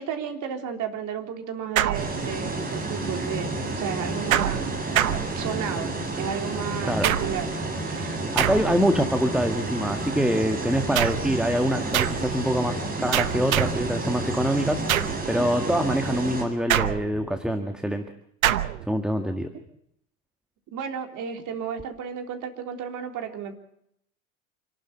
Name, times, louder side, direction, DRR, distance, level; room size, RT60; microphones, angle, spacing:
voice 1, 0.0-4.7 5.3-7.5 7.8-8.1 20.7-23.5, right 7 dB, 45° right, 4 dB, 3.6 m, -33 dB
sound 1, 1.8-2.6 4.3-5.8 7.0-7.6 8.4-9.0 10.9-11.4 11.9-12.3 13.1-13.9 14.9-15.3 16.7-17.3 18.4-18.9, right 12 dB, 75° right, 1.1 m, -26 dB
sound 2, 1.9-16.4, right 2 dB, 20° right, 7.2 m, -30 dB
voice 2, 8.3-14.8 15.2-18.0 18.9-19.5, equal, ahead, 6 dB, 1.8 m, -25 dB
28.0 x 12.0 x 8.2 m, 0.73 s
figure-of-eight pair, 75°, 42 cm